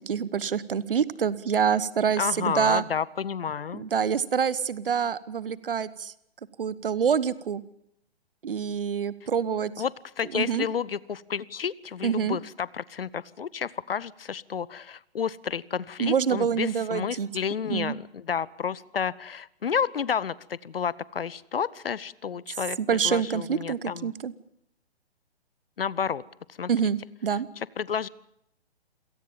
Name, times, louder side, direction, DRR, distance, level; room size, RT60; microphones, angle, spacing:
voice 1, 0.1-2.8 3.7-6.1 6.6-7.6 8.4-9.7 10.3-10.7 12.0-12.4 16.0-17.3 17.7-17.9 22.8-24.3 26.7-27.5, right 7 dB, 55° right, 19 dB, 1.1 m, -26 dB
voice 2, 2.2-3.8 9.8-24.1 25.8-26.2 26.6-26.7 27.8-28.1, left 7 dB, 60° left, 22 dB, 0.8 m, -31 dB
27.5 x 18.0 x 7.2 m, 0.77 s
figure-of-eight pair, 130°, 33 cm